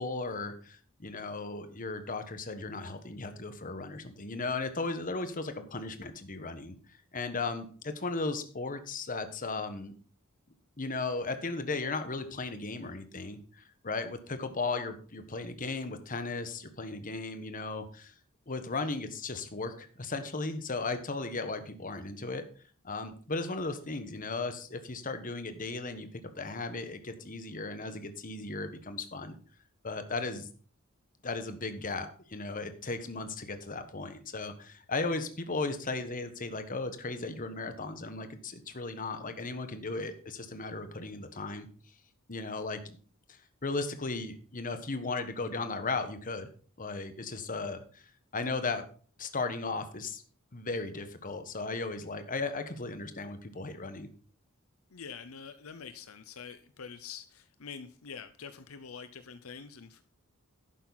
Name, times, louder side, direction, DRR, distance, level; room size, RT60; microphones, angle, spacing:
voice 1, 0.0-6.8 7.1-9.9 10.8-18.1 18.5-22.4 22.8-26.1 26.4-29.3 29.8-30.5 31.2-41.7 42.3-43.0 43.3-46.5 46.8-48.0 48.3-48.8 49.2-50.2 50.5-54.1, left 3 dB, 40° left, 9 dB, 1.3 m, -36 dB
voice 2, 54.9-60.0, left 6 dB, 75° left, 11 dB, 0.7 m, -46 dB
11.5 x 9.1 x 4.1 m, 0.42 s
head